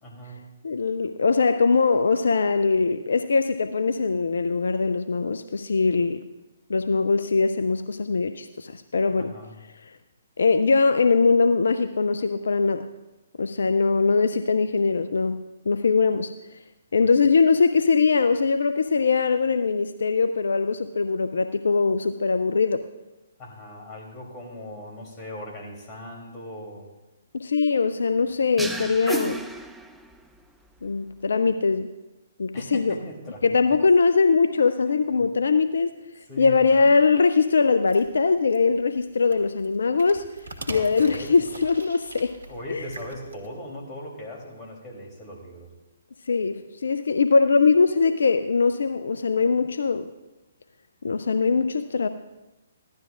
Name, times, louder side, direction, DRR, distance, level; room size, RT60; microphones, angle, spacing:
voice 1, 0.0-0.4 9.2-9.5 17.0-17.1 23.4-26.9 32.5-33.8 35.2-35.3 36.3-36.9 40.7-41.4 42.5-45.7, equal, 25° left, -2 dB, 3.0 m, -39 dB
voice 2, 0.6-6.2 6.7-9.3 9.9-10.0 10.4-12.9 13.4-16.3 16.9-22.8 27.3-29.4 30.8-31.9 32.4-33.0 33.4-35.9 36.4-40.2 40.7-42.3 42.7-42.8 46.3-50.1 51.0-52.1, left 4 dB, 70° left, 10 dB, 0.4 m, -21 dB
sound 1, 28.6-30.3, right 1 dB, 5° right, 0.5 m, -33 dB
sound 2, 37.9-43.5, right 2 dB, 75° right, 1.8 m, -42 dB
15.5 x 12.0 x 2.5 m, 1.0 s
figure-of-eight pair, 130°, 0 cm